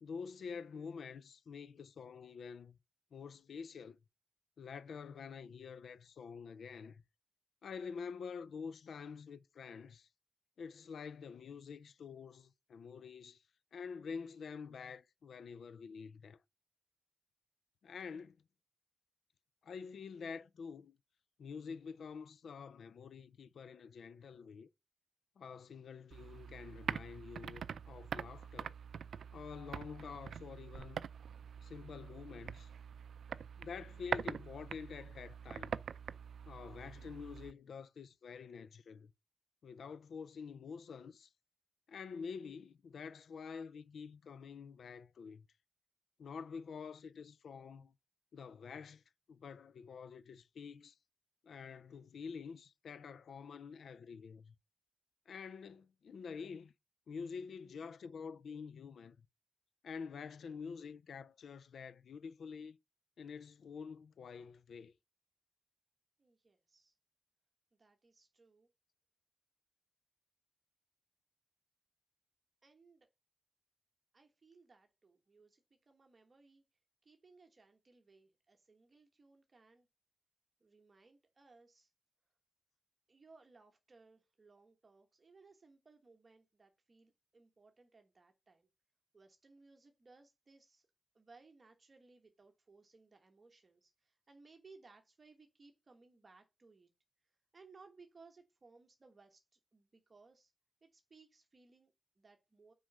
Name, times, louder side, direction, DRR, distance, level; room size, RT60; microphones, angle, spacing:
voice 1, 0.0-2.8 3.1-4.0 4.6-7.0 7.6-10.1 10.6-13.4 13.7-16.4 17.8-18.4 19.6-21.0 21.4-24.7 25.4-28.8 29.3-31.0 31.6-32.7 33.6-35.7 36.5-39.1 39.6-41.3 41.9-45.5 46.2-47.9 48.3-49.0 49.3-51.0 51.4-54.5 55.3-56.7 57.1-59.2 59.8-62.8 63.2-64.9, left 6 dB, 80° left, 0.4 m, -47 dB
sound 1, 26.1-37.5, right 7 dB, 85° right, 0.4 m, -44 dB
voice 2, 66.2-66.9 67.8-68.7 72.6-73.1 74.1-76.6 77.0-79.9 80.6-81.9 83.1-88.7 89.1-90.9 91.1-96.9 97.5-100.5 100.8-102.7, right 4 dB, 35° right, 1.2 m, -63 dB
6.2 x 4.9 x 5.4 m
wide cardioid pair, 105°, 0 cm